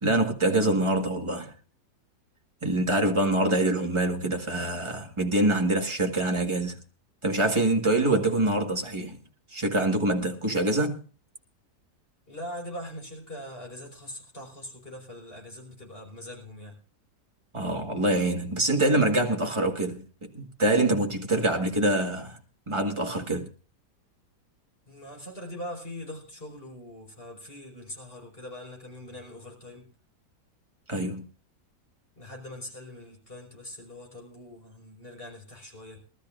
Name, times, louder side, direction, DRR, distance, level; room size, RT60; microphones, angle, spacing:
voice 1, 0.0-1.5 2.6-6.8 7.2-9.2 9.5-11.0 17.5-22.4 22.7-23.5 30.9-31.3, right 1 dB, 15° right, 1.7 m, -25 dB
voice 2, 12.3-16.8 24.9-29.9 32.2-36.0, left 1 dB, 30° left, 5.4 m, -42 dB
23.0 x 13.0 x 2.5 m
omnidirectional pair, 1.8 m